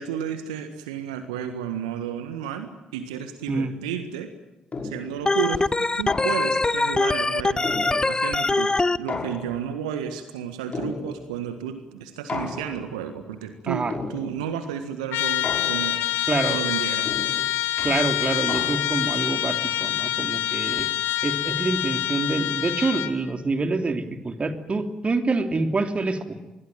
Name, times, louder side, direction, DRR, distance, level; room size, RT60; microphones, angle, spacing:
voice 1, 0.0-4.3 4.8-17.1, right 8 dB, 75° right, 8 dB, 1.7 m, -32 dB
sound 1, 4.7-5.3 6.1-6.7 7.6-8.4 9.1-9.9 10.7-11.4 12.3-13.0 13.9-14.6 15.4-16.2 17.1-19.1, left 3 dB, 35° left, 5.9 m, -34 dB
Organ, 5.3-9.0, left 2 dB, 20° left, 0.9 m, -23 dB
Trumpet, 15.1-23.2, left 13 dB, 65° left, 1.7 m, -26 dB
voice 2, 16.3-16.6 17.8-20.9 21.2-26.3, right 3 dB, 30° right, 7 dB, 3.1 m, -26 dB
25.5 x 21.0 x 9.2 m, 1.0 s
figure-of-eight pair, 45°, 4 cm